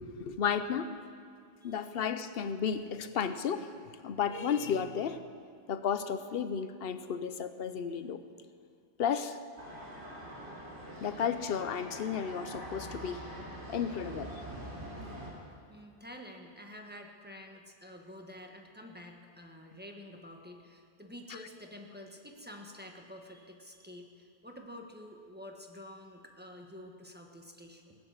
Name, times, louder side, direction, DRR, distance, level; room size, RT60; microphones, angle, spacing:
voice 1, 0.2-0.9 1.6-3.7 4.0-5.2 5.7-8.2 9.0-9.4 11.0-13.2 13.7-14.3, left 7 dB, 65° left, 11 dB, 0.9 m, -33 dB
sound 1, 9.6-15.3, right 1 dB, 90° right, 3.4 m, -44 dB
voice 2, 15.7-28.0, left 1 dB, 10° right, 1 dB, 1.3 m, -49 dB
16.5 x 9.9 x 7.4 m, 2.2 s
omnidirectional pair, 1.1 m